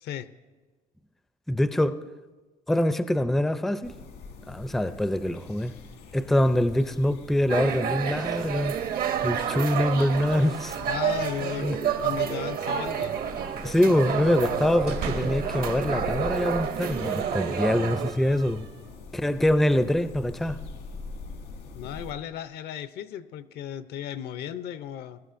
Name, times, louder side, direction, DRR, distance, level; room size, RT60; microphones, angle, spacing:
voice 1, 1.5-2.0 2.7-3.9 4.5-5.7 6.1-8.7 9.2-10.8 11.6-11.8 13.6-18.7 19.1-20.6, left 1 dB, ahead, 0.4 m, -24 dB
sound 1, 3.8-22.1, left 4 dB, 90° left, 1.9 m, -43 dB
sound 2, 7.5-18.1, right 8 dB, 60° right, 0.8 m, -29 dB
voice 2, 10.8-11.8 12.0-13.1 13.9-14.7 21.7-25.2, left 10 dB, 75° left, 0.6 m, -36 dB
sound 3, 14.7-15.6 16.1-18.9, right 6 dB, 75° right, 1.3 m, -40 dB
21.0 x 12.0 x 2.6 m
cardioid pair, 110°, 17 cm